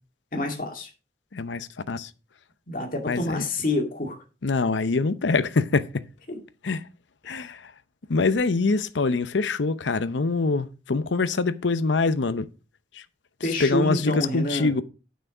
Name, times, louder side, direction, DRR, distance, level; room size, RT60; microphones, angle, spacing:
voice 1, 0.3-0.9 2.7-4.2 6.3-6.4 13.4-14.7, left 1 dB, 50° left, 2.2 m, -27 dB
voice 2, 1.3-2.1 3.1-3.5 4.4-6.0 6.6-6.8 7.3-7.6 8.1-12.5 13.6-14.8, left 3 dB, 90° left, 0.7 m, -24 dB
9.4 x 6.2 x 5.0 m
head